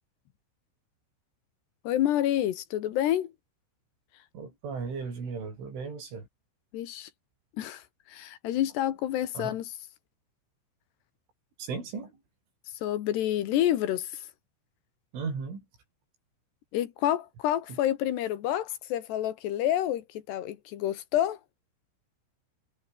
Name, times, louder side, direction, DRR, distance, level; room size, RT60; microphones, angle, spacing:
voice 1, 1.8-3.3 6.7-7.1 7.6-9.6 12.8-14.3 16.7-21.4, left 12 dB, 65° left, 3.4 m, -28 dB
voice 2, 4.3-6.3 9.4-9.6 11.6-12.2 15.1-15.7 17.7-17.8, right 5 dB, 75° right, 10.5 m, -36 dB
omnidirectional pair, 5.6 m